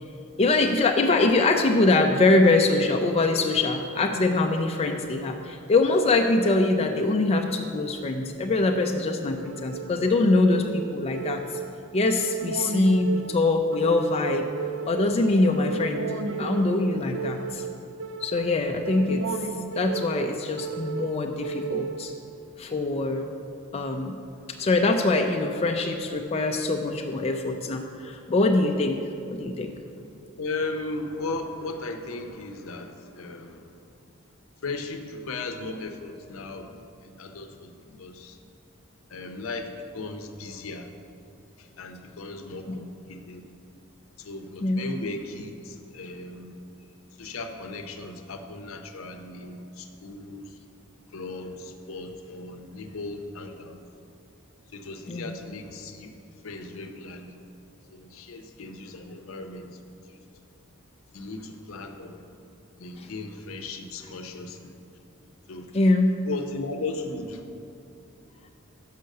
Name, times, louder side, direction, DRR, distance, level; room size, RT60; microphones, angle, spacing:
voice 1, 0.4-11.4 11.9-14.5 14.8-17.7 18.2-19.2 19.7-22.1 22.6-23.3 23.7-24.2 24.6-29.0 29.3-29.8 42.7-42.8 44.6-44.8 55.1-55.3 65.7-66.1, left 2 dB, 30° left, 3 dB, 0.3 m, -23 dB
sound 1, 9.4-22.4, right 4 dB, 60° right, 0.4 m, -34 dB
voice 2, 30.4-33.7 34.6-38.4 39.1-40.9 41.6-43.5 44.2-46.6 47.2-50.6 51.1-53.8 54.7-56.1 56.4-57.4 57.9-60.2 61.1-62.3 62.8-64.8 65.5-65.7 66.2-67.4, left 3 dB, 70° left, 6 dB, 0.6 m, -37 dB
6.4 x 5.6 x 6.5 m, 2.5 s
head